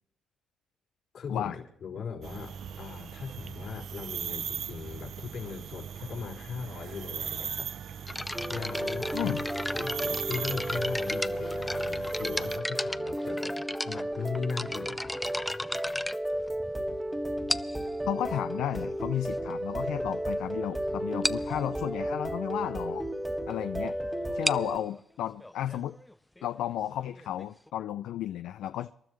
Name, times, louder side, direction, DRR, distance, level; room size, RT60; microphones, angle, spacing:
voice 1, 1.1-7.9 8.5-15.2, left 6 dB, 65° left, 4.2 m, -39 dB
sound 1, 2.2-12.6, right 8 dB, 70° right, 0.6 m, -39 dB
sound 2, 8.1-16.9 17.5-17.9 18.7-18.8 19.5-19.6 19.8-20.0 20.4-20.5 20.7-20.8 21.2-21.5 24.2-27.7, left 1 dB, 10° left, 0.5 m, -35 dB
sound 3, 8.3-24.8, equal, 10° right, 1.5 m, -33 dB
voice 2, 9.1-9.5 18.1-23.0 23.5-24.0 24.3-26.0 26.4-28.9, left 11 dB, 80° left, 0.4 m, -33 dB
26.5 x 12.5 x 3.1 m
cardioid pair, 90°, 0 cm